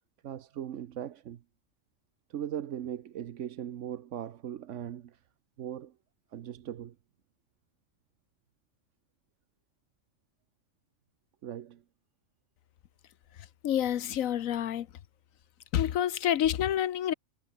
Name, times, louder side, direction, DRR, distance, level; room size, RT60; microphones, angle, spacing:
voice 1, 0.2-1.4 2.3-5.2 5.6-5.9 6.3-7.0 11.4-11.8, right 10 dB, 65° right, 1.1 m, -39 dB
voice 2, 13.6-14.9 15.7-17.1, left 11 dB, 85° left, 1.2 m, -28 dB
omnidirectional pair, 1.4 m